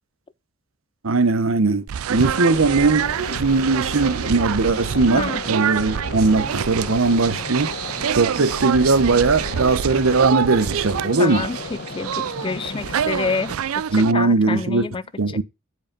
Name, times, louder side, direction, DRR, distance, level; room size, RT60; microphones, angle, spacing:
voice 1, 1.0-7.7 8.2-11.4 13.9-14.9 15.2-15.4, right 3 dB, 70° right, 0.8 m, -19 dB
sound 1, 1.9-14.1, right 8 dB, 90° right, 0.4 m, -27 dB
sound 2, 2.1-13.6, left 3 dB, 55° left, 1.0 m, -35 dB
voice 2, 11.2-11.6 12.0-13.5 13.9-15.0 15.3-15.4, left 4 dB, 25° left, 0.4 m, -27 dB
7.8 x 4.8 x 5.3 m
head